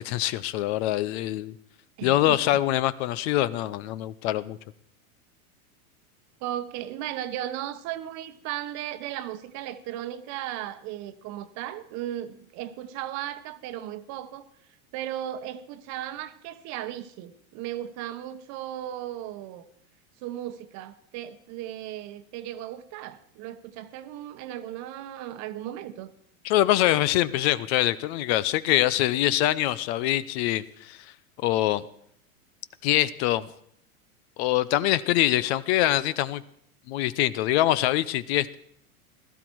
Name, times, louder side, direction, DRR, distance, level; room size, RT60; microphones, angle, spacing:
voice 1, 0.0-1.5 2.0-4.6 26.4-31.0 31.4-31.8 32.8-33.5 34.4-36.4 36.9-38.6, left 14 dB, 50° left, 0.7 m, -24 dB
voice 2, 2.0-2.6 6.4-14.5 14.9-19.6 20.2-26.1, right 12 dB, 40° right, 1.1 m, -36 dB
16.5 x 14.0 x 4.6 m
supercardioid pair, 135°, 43 cm